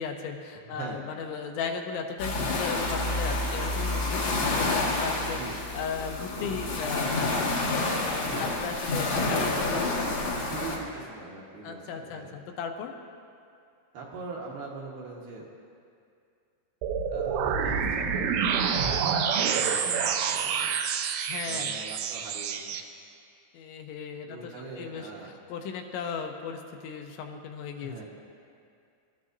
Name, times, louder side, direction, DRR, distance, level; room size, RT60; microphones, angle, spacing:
voice 1, 0.0-10.2 11.6-12.9 19.6-20.1 21.3-21.8 23.5-25.1 25.5-28.0, left 6 dB, 80° left, 3 dB, 3.2 m, -36 dB
voice 2, 0.5-1.0 5.3-5.6 8.3-8.6 9.3-9.8 10.5-12.3 13.9-15.5 17.1-20.7 21.5-22.6 24.3-25.3 27.8-28.0, right 3 dB, 65° right, -4 dB, 2.8 m, -42 dB
sound 1, 2.2-10.8, left 2 dB, 65° left, 1.2 m, -29 dB
sound 2, 16.8-22.8, right 7 dB, 80° right, 3.1 m, -27 dB
24.5 x 13.0 x 2.6 m, 2.4 s
omnidirectional pair, 5.4 m